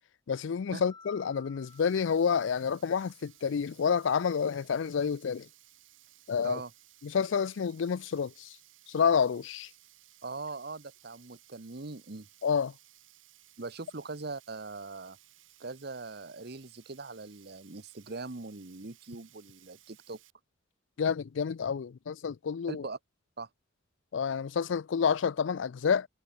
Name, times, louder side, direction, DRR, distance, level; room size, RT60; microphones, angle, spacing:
voice 1, 0.3-5.5 6.3-6.6 7.0-8.6 8.9-9.7 12.4-12.7 21.0-22.9 24.1-26.1, left 6 dB, 65° left, 0.4 m, -29 dB
Mallet percussion, 0.9-3.3, left 4 dB, 20° left, 5.8 m, -57 dB
Sink (filling or washing), 1.6-20.3, right 14 dB, 70° right, 2.1 m, -60 dB
voice 2, 10.2-12.3 13.6-15.2 15.6-20.2 22.7-23.0 23.4-23.5, right 3 dB, 50° right, 1.1 m, -41 dB
head